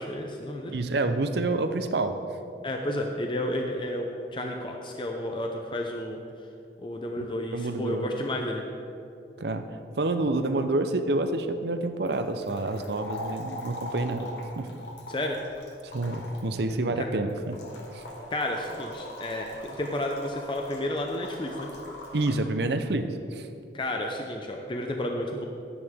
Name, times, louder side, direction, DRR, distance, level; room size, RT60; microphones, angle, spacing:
voice 1, 0.0-0.8 2.6-6.2 6.8-8.6 15.1-15.4 17.0-17.1 18.3-21.7 23.7-25.4, left 1 dB, 30° left, 2 dB, 0.6 m, -31 dB
voice 2, 0.7-2.1 7.5-8.0 9.4-14.3 14.6-14.7 15.8-17.6 17.9-18.0 22.1-23.5, right 2 dB, 70° right, 8 dB, 0.7 m, -28 dB
sound 1, 12.1-22.4, left 1 dB, 85° left, 1.6 m, -42 dB
12.0 x 9.6 x 3.6 m, 2.6 s
head